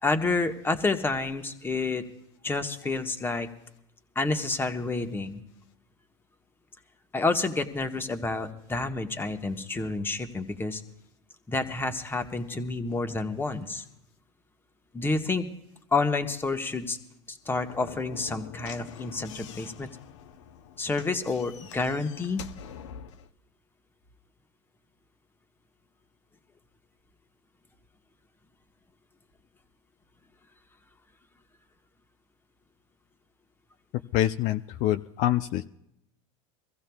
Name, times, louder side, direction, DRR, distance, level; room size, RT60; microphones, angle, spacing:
voice 1, 0.0-2.0 2.4-3.5 4.1-5.4 7.1-10.8 11.5-13.8 14.9-15.5 15.9-17.0 17.3-19.9 20.8-22.4, left 3 dB, 15° left, 7 dB, 1.2 m, -29 dB
Slam / Knock, 17.4-23.3, left 8 dB, 85° left, 0.7 m, -45 dB
voice 2, 34.1-35.7, left 13 dB, 55° left, 10 dB, 0.4 m, -26 dB
24.0 x 15.0 x 2.3 m, 0.81 s
supercardioid pair, 110°, 15 cm